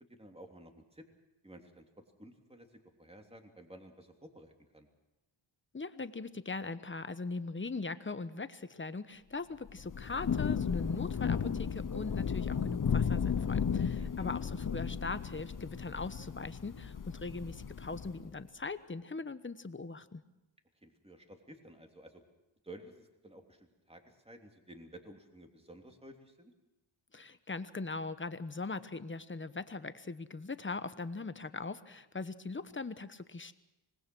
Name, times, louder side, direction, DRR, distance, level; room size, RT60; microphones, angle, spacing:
voice 1, 0.1-1.0 1.4-1.8 2.2-2.7 3.0-4.9 14.0-14.3 20.8-22.2 22.6-26.5, right 1 dB, 10° right, 3 dB, 3.2 m, -53 dB
voice 2, 5.7-20.2 27.1-33.5, left 3 dB, 25° left, 12 dB, 1.1 m, -40 dB
Thunder / Rain, 9.7-18.3, left 6 dB, 40° left, 0.9 m, -34 dB
25.5 x 20.0 x 6.3 m, 0.96 s
cardioid pair, 75°, 49 cm